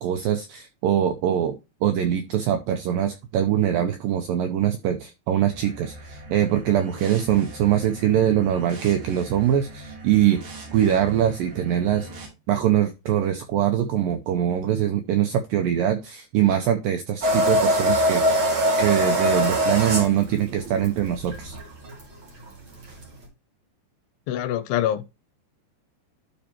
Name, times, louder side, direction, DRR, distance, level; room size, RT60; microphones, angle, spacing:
voice 1, 0.0-1.6 1.8-10.4 10.7-12.1 12.5-18.4 18.8-21.6, right 10 dB, 85° right, 2.0 m, -23 dB
sound 1, 5.4-12.3, right 1 dB, 70° right, 4.5 m, -41 dB
sound 2, 17.2-23.2, equal, 40° right, 2.2 m, -23 dB
voice 2, 24.3-25.1, left 11 dB, 85° left, 2.6 m, -25 dB
12.0 x 4.3 x 2.9 m
omnidirectional pair, 4.9 m